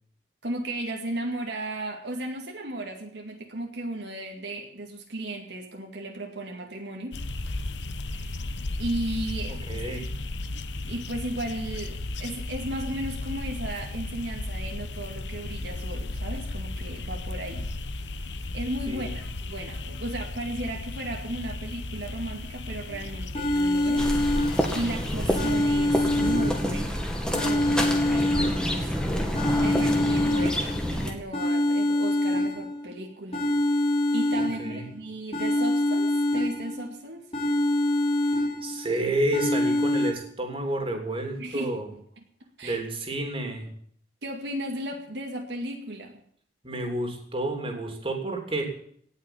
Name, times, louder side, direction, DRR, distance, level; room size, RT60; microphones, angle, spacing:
voice 1, 0.4-7.2 8.1-8.4 8.8-9.6 10.9-17.7 18.5-27.0 27.3-28.9 29.6-33.8 34.1-37.3 41.4-41.8 42.6-42.8 44.2-46.2, right 1 dB, 75° right, 2 dB, 2.2 m, -35 dB
sound 1, 7.1-25.6, left 2 dB, 90° left, 1.1 m, -35 dB
voice 2, 9.7-10.0 18.9-19.2 34.6-34.9 38.3-41.9 42.6-43.7 46.6-48.7, right 1 dB, 30° right, 3 dB, 3.2 m, -30 dB
sound 2, 22.9-23.0 23.3-24.9 25.3-26.9 27.3-28.9 29.3-30.9 31.3-32.9 33.3-34.9 35.3-36.9 37.3-38.9 39.3-40.1, left 1 dB, 35° left, 3.3 m, -25 dB
sound 3, 24.0-31.1, equal, 5° left, 2.2 m, -28 dB
18.0 x 6.5 x 10.0 m, 0.64 s
head